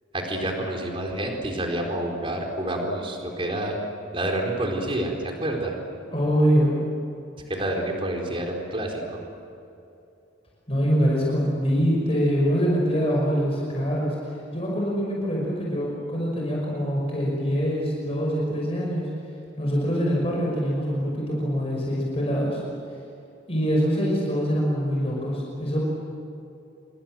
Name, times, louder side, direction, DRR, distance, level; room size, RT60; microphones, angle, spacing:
voice 1, 0.1-3.8 4.1-5.7 7.5-9.2, right 1 dB, 30° right, 1 dB, 4.3 m, -28 dB
voice 2, 6.1-6.7 10.7-14.1 14.5-19.1 19.6-22.6 23.5-25.8, equal, 30° left, -3 dB, 5.8 m, -24 dB
28.5 x 24.5 x 7.7 m, 2.7 s
head